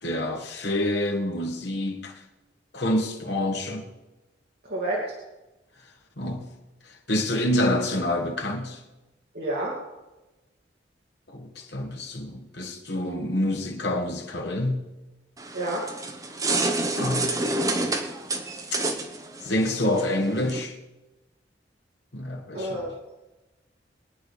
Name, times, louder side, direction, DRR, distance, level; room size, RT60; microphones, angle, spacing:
voice 1, 0.0-2.2 2.7-3.9 6.2-6.5 6.9-8.8 11.3-14.8 17.0-17.4 19.4-20.8 22.1-22.8, left 1 dB, 65° left, 2 dB, 2.1 m, -27 dB
voice 2, 4.6-5.1 9.3-9.8 15.5-15.9 22.5-22.9, right 1 dB, 55° right, -5 dB, 2.6 m, -29 dB
sound 1, 15.4-20.6, right 2 dB, 20° right, 1.2 m, -28 dB
23.0 x 9.0 x 5.1 m, 1.0 s
head